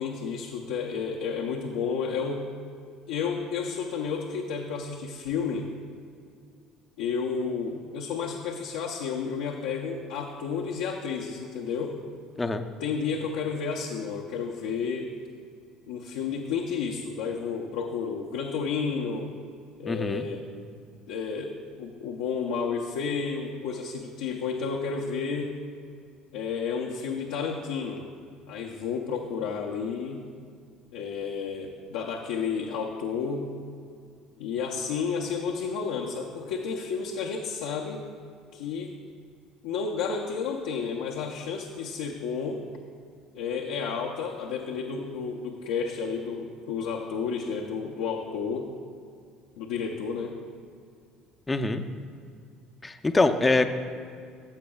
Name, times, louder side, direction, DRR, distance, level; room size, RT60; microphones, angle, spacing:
voice 1, 0.0-2.5 3.1-5.7 7.0-12.0 12.8-15.1 15.9-19.3 19.8-20.5 21.1-25.6 26.3-28.1 28.5-30.2 30.9-33.5 34.4-38.1 38.5-38.9 39.6-42.6 43.3-48.7 49.6-50.3, left 5 dB, 75° left, -1 dB, 0.6 m, -31 dB
voice 2, 19.9-20.3 51.5-51.8 52.8-53.6, left 3 dB, 20° left, 7 dB, 0.6 m, -24 dB
14.5 x 7.7 x 2.3 m, 2.2 s
hypercardioid pair, 65°, 0 cm